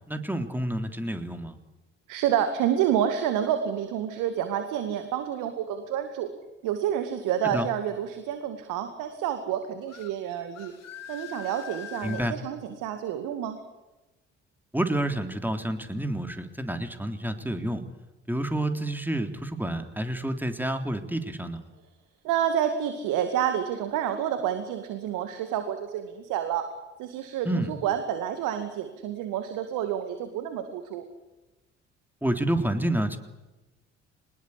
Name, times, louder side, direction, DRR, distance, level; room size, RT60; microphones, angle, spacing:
voice 1, 0.1-1.6 7.4-7.7 12.0-12.4 14.7-17.8 18.3-21.6 27.4-27.7 32.2-33.2, right 1 dB, 5° right, 7 dB, 3.6 m, -29 dB
voice 2, 2.1-6.3 6.6-10.7 11.1-13.6 22.2-26.7 27.0-31.1, right 9 dB, 70° right, 8 dB, 2.1 m, -29 dB
sound 1, 9.9-10.1 10.6-12.3, left 9 dB, 50° left, 2.3 m, -42 dB
24.0 x 20.5 x 8.5 m, 1.1 s
figure-of-eight pair, 45°, 33 cm